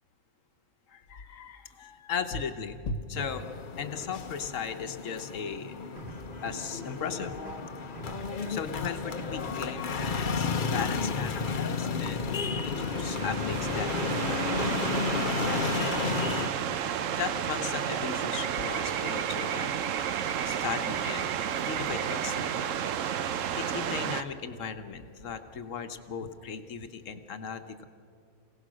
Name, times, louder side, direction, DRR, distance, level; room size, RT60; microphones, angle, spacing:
voice 1, 0.9-3.5 3.8-5.7 6.4-7.4 8.5-12.2 12.6-15.8 17.2-19.7 20.4-21.4 21.6-22.7 23.6-27.8, left 6 dB, 60° left, 8 dB, 1.3 m, -37 dB
sound 1, 3.1-16.5, left 5 dB, 40° left, 0.8 m, -32 dB
sound 2, 6.0-14.0, equal, 35° right, 2.7 m, -44 dB
sound 3, 12.7-24.2, right 9 dB, 65° right, 1.0 m, -31 dB
26.5 x 17.5 x 6.2 m, 2.5 s
omnidirectional pair, 1.5 m